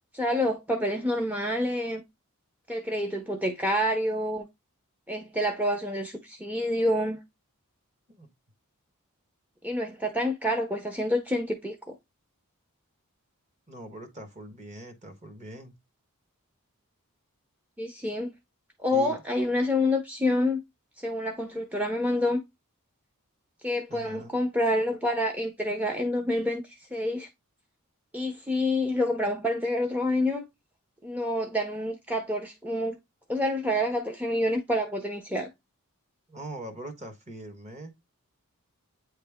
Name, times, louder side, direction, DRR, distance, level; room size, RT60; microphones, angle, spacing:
voice 1, 0.1-2.0 2.7-4.5 5.1-7.2 9.6-11.9 17.8-18.3 18.8-20.6 21.0-22.4 23.6-27.3 28.1-30.4 31.0-33.0 33.3-35.5, left 1 dB, 5° right, 0.7 m, -28 dB
voice 2, 13.7-15.7 18.9-19.2 23.9-24.3 36.3-37.9, right 1 dB, 30° right, 1.4 m, -42 dB
8.7 x 3.2 x 3.5 m
head